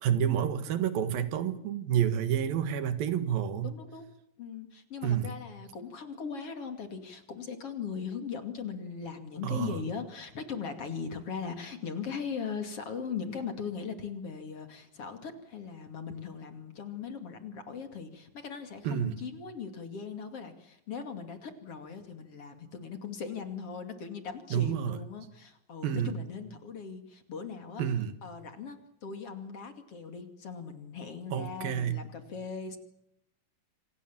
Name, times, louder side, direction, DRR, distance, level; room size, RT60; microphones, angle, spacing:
voice 1, 0.0-3.7 5.0-5.3 9.4-9.8 18.8-19.2 24.5-25.0 25.8-26.2 27.8-28.1 31.3-32.1, right 9 dB, 85° right, 11 dB, 3.4 m, -29 dB
voice 2, 3.6-4.1 4.4-27.8 28.2-32.8, left 6 dB, 45° left, 7 dB, 3.1 m, -39 dB
27.5 x 25.5 x 7.4 m, 0.77 s
omnidirectional pair, 4.0 m